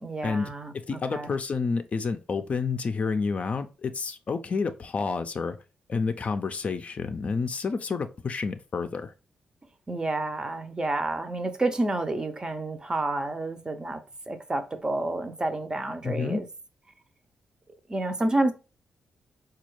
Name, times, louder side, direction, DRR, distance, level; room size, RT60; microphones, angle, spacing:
voice 1, 0.0-0.7 1.1-1.3 9.9-14.0 14.3-16.5 17.9-18.5, right 2 dB, 25° right, 0.5 m, -29 dB
voice 2, 0.9-5.6 5.9-9.1 16.0-16.4, left 4 dB, 45° left, 0.4 m, -29 dB
4.1 x 2.3 x 3.1 m
cardioid pair, 65°, 3 cm